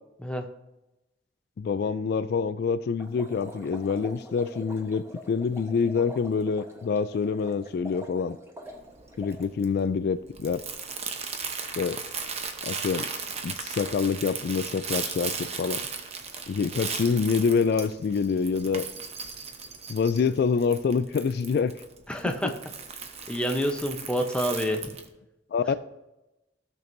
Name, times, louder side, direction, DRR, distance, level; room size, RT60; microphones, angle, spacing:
voice 1, 1.6-8.4 9.2-10.6 11.8-12.0 12.6-13.1 13.4-15.8 16.5-18.9 19.9-21.7 25.5-25.7, left 5 dB, 60° left, 13 dB, 0.3 m, -26 dB
sound 1, 3.0-9.5, right 1 dB, 15° right, 1.0 m, -45 dB
Crumpling crinkling, 8.7-25.1, right 5 dB, 35° right, 0.8 m, -37 dB
voice 2, 22.1-22.6 23.3-24.9, equal, 5° left, 3 dB, 0.7 m, -28 dB
15.5 x 6.1 x 2.6 m, 0.97 s
head